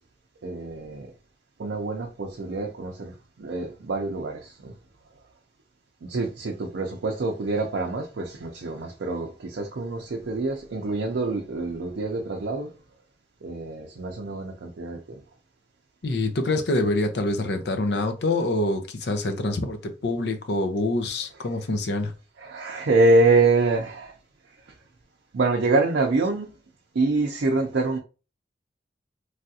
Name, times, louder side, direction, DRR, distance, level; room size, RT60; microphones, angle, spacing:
voice 1, 0.4-1.1 1.6-4.8 6.0-12.7 13.4-15.2 22.4-24.1 24.6-24.7 25.3-26.5 26.9-28.0, right 3 dB, 85° right, 0.5 m, -25 dB
voice 2, 16.0-22.1, left 2 dB, 75° left, 0.6 m, -26 dB
3.3 x 2.4 x 2.7 m
head